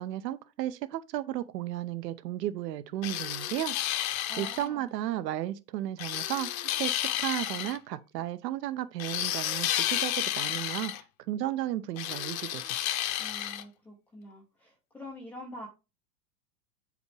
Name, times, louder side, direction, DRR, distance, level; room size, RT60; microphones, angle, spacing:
voice 1, 0.0-3.8 4.4-10.9 11.3-12.8, right 13 dB, 75° right, 0.8 m, -34 dB
sound 1, 3.0-4.7 6.0-7.8 9.0-11.0 12.0-13.6, left 13 dB, 55° left, 0.9 m, -31 dB
voice 2, 4.3-4.9 13.2-15.7, left 1 dB, 5° left, 0.3 m, -45 dB
7.9 x 5.0 x 3.2 m
supercardioid pair, 150°, 49 cm